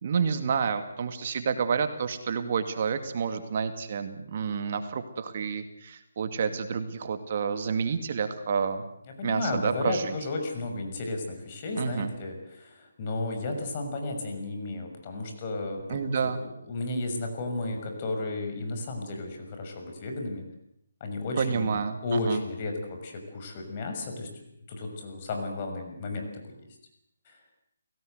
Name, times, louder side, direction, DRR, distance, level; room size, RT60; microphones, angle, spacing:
voice 1, 0.0-8.8 9.2-10.2 11.7-12.1 15.9-16.4 21.4-22.4, right 6 dB, 45° right, 8 dB, 2.3 m, -29 dB
voice 2, 9.2-20.4 21.0-24.3 24.7-26.5 27.2-27.4, left 2 dB, 35° left, 4 dB, 6.3 m, -33 dB
29.0 x 17.5 x 8.1 m, 0.74 s
hypercardioid pair, 155°, 0 cm